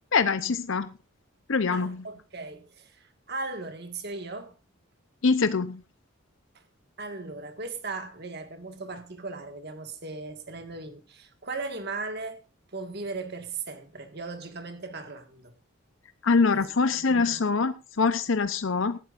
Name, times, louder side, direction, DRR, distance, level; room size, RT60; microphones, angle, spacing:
voice 1, 0.1-0.9 1.5-2.0 5.2-5.8 16.2-19.0, left 4 dB, 65° left, 0.7 m, -24 dB
voice 2, 1.7-4.6 6.5-6.6 7.0-12.4 12.7-15.5 16.5-17.7, right 3 dB, 50° right, 1.8 m, -38 dB
18.5 x 12.0 x 2.6 m
head